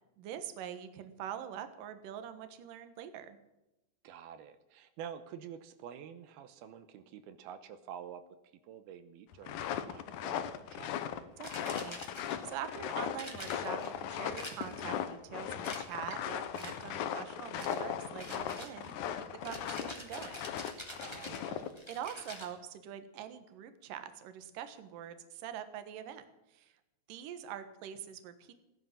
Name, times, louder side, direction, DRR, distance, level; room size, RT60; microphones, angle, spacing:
voice 1, 0.2-3.4 11.4-20.5 21.9-26.3 26.5-26.7 27.1-28.5, right 9 dB, 65° right, 10 dB, 2.8 m, -44 dB
voice 2, 4.0-8.2 8.7-10.9 20.9-21.7, right 8 dB, 85° right, 10 dB, 2.9 m, -48 dB
sound 1, 9.3-21.7, left 9 dB, 70° left, 2.1 m, -38 dB
sound 2, 11.4-12.6 13.2-13.9 14.4-15.0 15.6-16.2 16.6-17.0 17.6-17.8 18.2-22.5, left 1 dB, 10° left, 2.2 m, -47 dB
16.5 x 11.0 x 7.5 m, 0.94 s
omnidirectional pair, 4.4 m